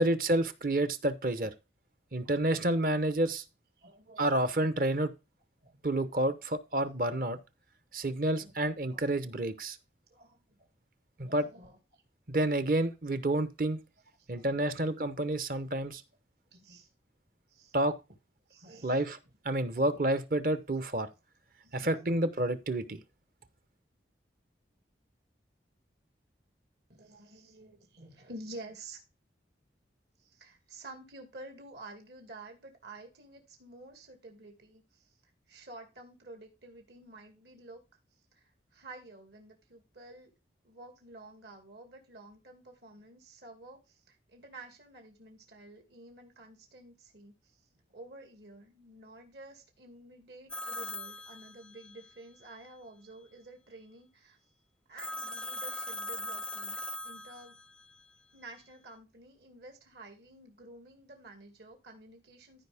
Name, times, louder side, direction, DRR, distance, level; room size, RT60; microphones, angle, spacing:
voice 1, 0.0-1.5 2.1-3.4 4.2-5.1 5.8-7.4 7.9-9.8 11.2-11.5 12.3-13.8 14.3-16.0 17.7-18.0 18.8-19.2 19.4-21.1 21.7-23.0, right 1 dB, 50° right, 0.9 m, -29 dB
voice 2, 2.2-2.6 3.8-4.7 5.6-5.8 8.4-8.5 8.9-9.4 10.1-10.7 11.2-12.0 14.2-14.8 16.5-16.9 17.5-17.7 18.5-19.0 19.7-19.9 21.6-22.2 26.9-29.0 30.2-35.1 35.5-37.8 38.3-40.3 40.6-47.6 47.9-54.4 54.9-56.7 57.0-57.6 58.3-62.6, right 2 dB, 65° right, 2.4 m, -51 dB
Telephone, 50.5-52.0 55.0-57.8, left 1 dB, 5° left, 0.4 m, -40 dB
14.0 x 5.0 x 3.5 m
head